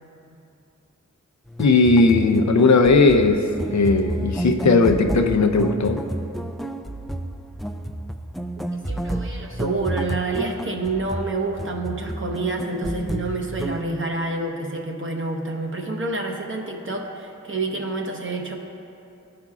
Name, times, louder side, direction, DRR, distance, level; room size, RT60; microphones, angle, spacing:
sound 1, 1.5-13.8, right 1 dB, ahead, 0.3 m, -30 dB
voice 1, 1.6-6.1, left 3 dB, 65° left, 5 dB, 0.6 m, -17 dB
voice 2, 8.9-18.6, right 3 dB, 40° right, 1 dB, 0.9 m, -28 dB
13.5 x 5.0 x 2.4 m, 2.7 s
cardioid pair, 55°, 31 cm